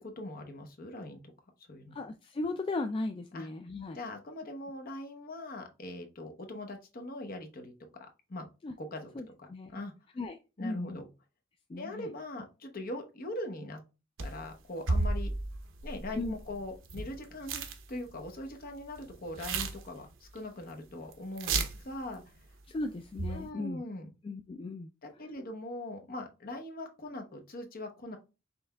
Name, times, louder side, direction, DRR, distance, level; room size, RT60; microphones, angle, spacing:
voice 1, 0.0-1.2 1.7-2.0 3.3-3.5 3.9-7.7 8.3-8.5 8.8-9.9 10.6-11.1 11.8-13.8 14.2-15.3 15.8-17.6 17.9-22.3 23.3-24.1 25.0-28.2, left 1 dB, 50° left, 4 dB, 0.8 m, -41 dB
voice 2, 1.9-4.0 8.6-8.7 9.2-9.8 10.2-11.0 11.7-12.1 16.2-16.3 22.7-23.8 24.2-24.9, left 2 dB, 25° left, 6 dB, 0.3 m, -37 dB
sound 1, 14.2-14.5 14.9-17.2 17.4-17.8 18.1-18.5 19.0-20.4 20.6-20.7 21.1-21.2 21.4-21.9 23.1-23.5, right 3 dB, 75° right, 0.7 m, -33 dB
5.3 x 3.4 x 2.2 m, 0.29 s
head